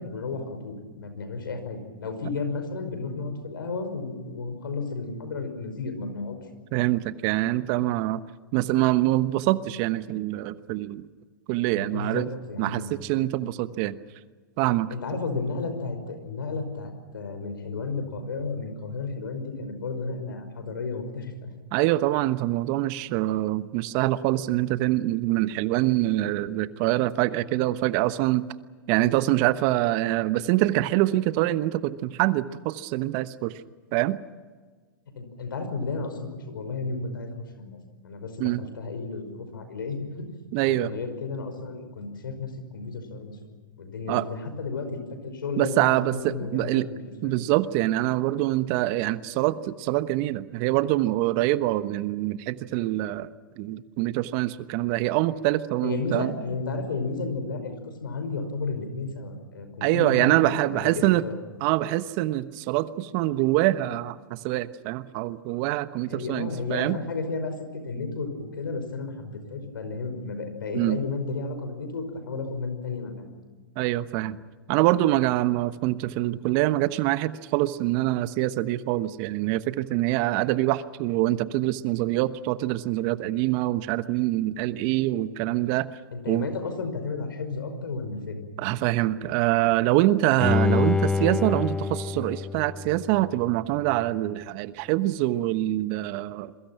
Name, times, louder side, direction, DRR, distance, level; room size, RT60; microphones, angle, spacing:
voice 1, 0.0-6.4 11.6-12.9 14.9-21.5 35.2-37.8 38.0-40.3 40.7-43.4 43.8-47.4 55.8-61.4 66.1-73.3 86.1-88.5, left 4 dB, 80° left, 8 dB, 5.5 m, -33 dB
voice 2, 6.7-8.2 8.5-11.0 11.5-12.3 12.6-13.9 14.6-14.9 21.7-28.4 28.9-33.5 33.9-34.2 38.4-38.6 40.5-40.9 44.1-44.2 45.6-46.9 47.2-53.3 53.6-56.3 59.8-61.2 61.6-67.0 70.7-71.0 73.8-74.4 74.7-85.9 86.3-86.5 88.6-96.5, right 16 dB, 45° right, 14 dB, 1.1 m, -25 dB
Bowed string instrument, 90.4-93.5 93.9-94.0, left 4 dB, 5° left, 0.6 m, -26 dB
28.0 x 23.0 x 6.0 m, 1.4 s
hypercardioid pair, 110°, 11 cm